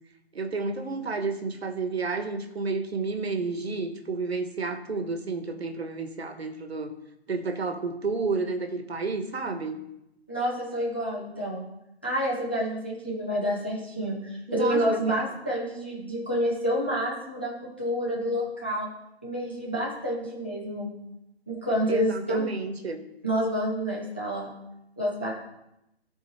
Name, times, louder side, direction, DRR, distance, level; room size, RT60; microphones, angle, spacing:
voice 1, 0.3-6.9 7.3-9.8 14.5-15.2 21.9-23.0, right 4 dB, 75° right, 7 dB, 1.4 m, -31 dB
voice 2, 10.3-11.6 12.0-18.9 19.2-20.9 21.5-22.6 23.2-24.5 25.0-25.3, equal, 10° left, -5 dB, 0.7 m, -28 dB
12.0 x 4.6 x 4.2 m, 0.86 s
hypercardioid pair, 175°, 32 cm